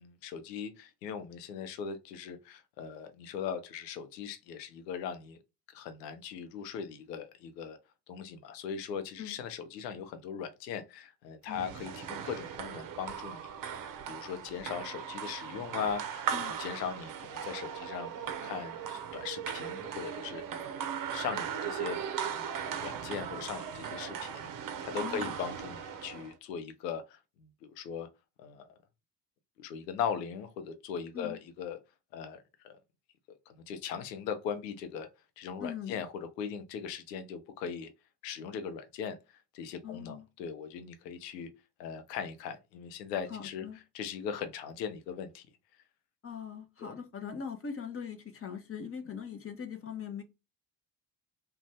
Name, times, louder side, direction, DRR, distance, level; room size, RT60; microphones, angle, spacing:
voice 1, 0.0-5.4 5.7-7.8 8.1-13.5 14.1-16.3 16.6-20.4 20.8-22.0 22.4-28.1 28.4-28.7 29.6-31.8 32.1-32.8 33.5-35.1 35.4-37.9 38.2-39.2 39.5-41.5 41.8-43.6 43.9-45.5 46.8-46.9, left 7 dB, 80° left, 0.7 m, -39 dB
sound 1, 11.5-26.3, right 8 dB, 45° right, 0.6 m, -38 dB
voice 2, 25.0-25.4 31.1-31.4 35.6-36.0 39.8-40.3 43.3-43.8 46.2-50.2, left 7 dB, 30° left, 0.7 m, -41 dB
2.5 x 2.4 x 3.2 m
hypercardioid pair, 55°, 48 cm